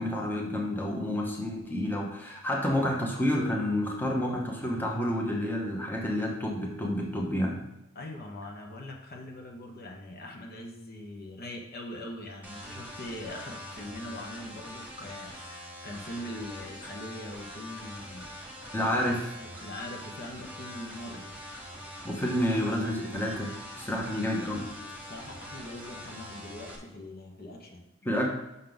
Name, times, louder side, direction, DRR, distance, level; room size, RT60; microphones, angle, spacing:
voice 1, 0.0-7.6 18.7-19.3 22.0-24.7 28.0-28.3, left 1 dB, 10° left, -1 dB, 0.9 m, -29 dB
voice 2, 7.9-18.3 19.4-21.3 25.1-27.9, left 1 dB, 50° left, 1 dB, 1.1 m, -42 dB
sound 1, 12.4-26.8, equal, 10° right, 1.5 m, -44 dB
6.5 x 5.6 x 3.9 m, 0.94 s
head